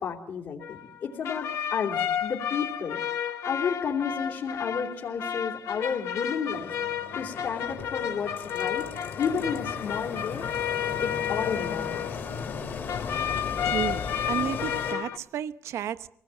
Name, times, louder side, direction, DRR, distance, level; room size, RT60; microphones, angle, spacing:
voice 1, 0.0-6.7 7.1-8.9 9.2-10.5 11.0-12.2, left 6 dB, 70° left, 3.1 m, -32 dB
sound 1, 0.6-12.6 12.9-15.2, left 9 dB, 85° left, 1.0 m, -32 dB
Engine, 6.5-14.9, left 5 dB, 55° left, 2.3 m, -36 dB
voice 2, 13.6-16.1, right 10 dB, 85° right, 0.8 m, -32 dB
24.0 x 18.5 x 8.8 m
cardioid pair, 160°, 5 cm